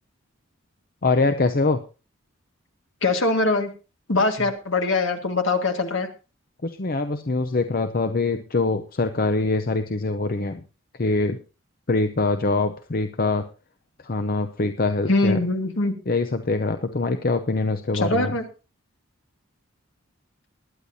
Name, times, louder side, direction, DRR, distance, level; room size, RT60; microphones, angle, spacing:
voice 1, 1.0-1.8 6.6-10.6 10.9-11.4 11.9-13.4 14.0-15.4 16.1-18.4, left 3 dB, 45° left, 9 dB, 0.6 m, -24 dB
voice 2, 3.0-3.7 4.1-6.1 15.1-15.9 17.9-18.4, left 3 dB, 60° left, 5 dB, 1.8 m, -22 dB
20.5 x 10.0 x 2.7 m, 0.32 s
head